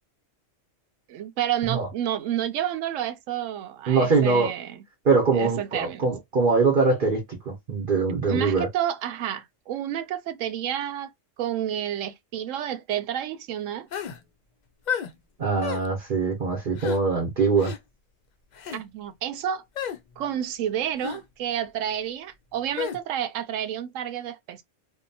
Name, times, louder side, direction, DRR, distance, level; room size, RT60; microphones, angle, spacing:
voice 1, 1.1-4.8 5.3-6.0 8.3-11.1 11.4-13.9 18.7-19.6 20.2-24.6, right 10 dB, 85° right, 0.9 m, -30 dB
voice 2, 3.9-4.6 5.0-8.7 15.4-17.7, right 4 dB, 45° right, 0.9 m, -23 dB
sound 1, 13.9-14.2 14.9-15.1 15.6-15.9 16.8-17.0 17.6-17.8 18.5-18.8 19.8-20.0 21.0-21.2 22.8-23.0, left 8 dB, 60° left, 0.4 m, -31 dB
2.8 x 2.2 x 2.6 m
omnidirectional pair, 1.3 m